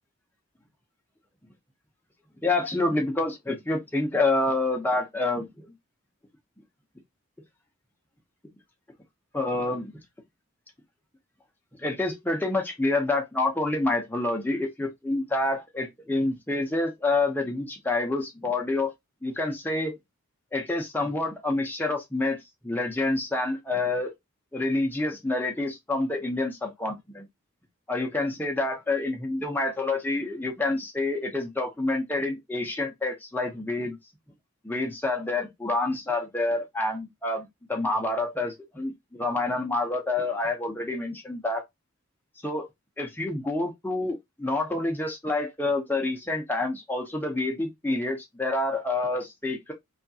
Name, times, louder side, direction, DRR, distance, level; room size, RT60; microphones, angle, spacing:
voice 1, 2.4-5.7 9.3-9.9 11.8-18.9 19.2-20.0 20.5-22.4 22.6-24.1 24.5-27.3 27.9-34.0 34.6-41.6 42.4-42.7 43.0-49.7, left 2 dB, 10° left, 0.6 m, -28 dB
2.8 x 2.4 x 2.7 m
head